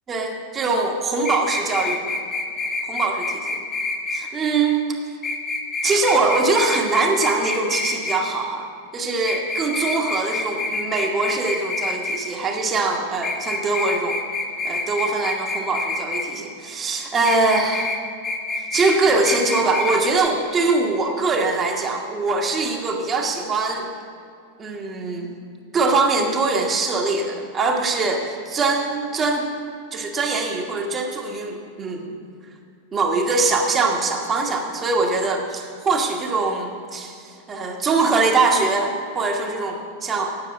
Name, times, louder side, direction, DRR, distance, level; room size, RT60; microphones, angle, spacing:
voice 1, 0.1-2.1 2.9-3.2 4.1-4.8 5.8-8.7 8.9-14.2 14.6-17.9 18.6-23.9 24.6-25.3 25.7-29.5 29.9-32.2 32.9-40.4, right 3 dB, 20° right, 1 dB, 1.2 m, -22 dB
sound 1, 1.2-4.2 5.2-8.2 9.2-12.2 13.2-16.3 17.2-18.0 18.2-19.0 19.2-20.0 20.2-20.3, left 3 dB, 20° left, 1.2 m, -27 dB
9.9 x 6.8 x 7.7 m, 2.4 s
figure-of-eight pair, 90°, 0 cm